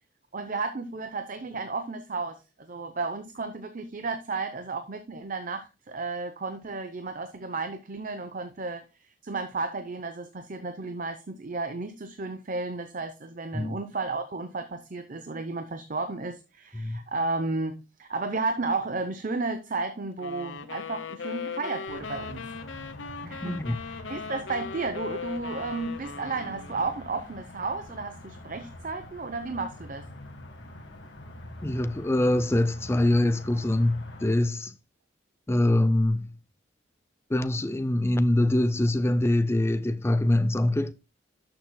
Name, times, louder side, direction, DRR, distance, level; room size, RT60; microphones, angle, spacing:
voice 1, 0.3-8.8 9.2-22.4 23.2-30.1, right 3 dB, 45° right, 0.7 m, -33 dB
sound 1, 20.2-27.0, left 5 dB, 85° left, 0.9 m, -38 dB
sound 2, 21.9-34.3, left 1 dB, 70° left, 1.6 m, -45 dB
voice 2, 23.4-23.8 31.6-34.7 35.5-36.3 37.3-40.9, left 1 dB, 15° left, 0.5 m, -24 dB
12.0 x 6.9 x 2.3 m
head